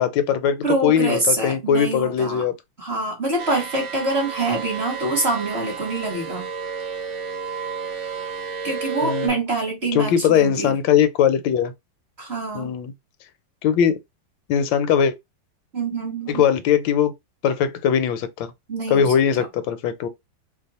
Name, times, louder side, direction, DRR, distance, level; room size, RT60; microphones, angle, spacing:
voice 1, 0.0-2.5 9.0-9.4 9.9-11.7 12.5-12.9 13.6-13.9 14.5-15.1 16.3-17.1 17.4-18.5 18.9-20.1, left 8 dB, 80° left, 1.3 m, -20 dB
voice 2, 0.6-2.5 2.8-6.5 8.6-10.8 12.2-12.8 15.7-16.4 18.7-19.5, right 2 dB, 40° right, 1.2 m, -25 dB
sound 1, 3.4-9.3, right 6 dB, 65° right, 0.7 m, -31 dB
3.0 x 2.2 x 4.0 m
omnidirectional pair, 2.0 m